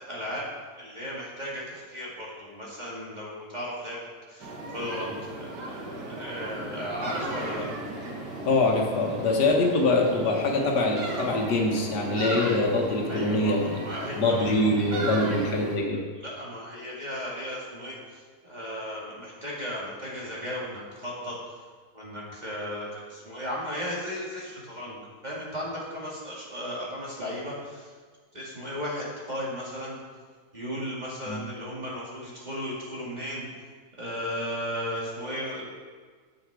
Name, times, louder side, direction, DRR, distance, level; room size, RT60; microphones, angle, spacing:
voice 1, 0.1-0.4 0.7-4.0 4.3-7.7 13.1-14.5 15.1-15.3 16.1-21.4 21.9-25.0 25.2-27.9 28.3-30.0 30.5-33.4 34.0-35.6, equal, 25° right, -6 dB, 2.3 m, -35 dB
sound 1, 4.4-15.8, right 2 dB, 90° right, 2.0 m, -36 dB
voice 2, 8.5-13.8 14.2-16.0 31.3-31.4, left 2 dB, 80° left, 1 dB, 1.8 m, -24 dB
9.3 x 7.1 x 4.7 m, 1.5 s
omnidirectional pair, 1.8 m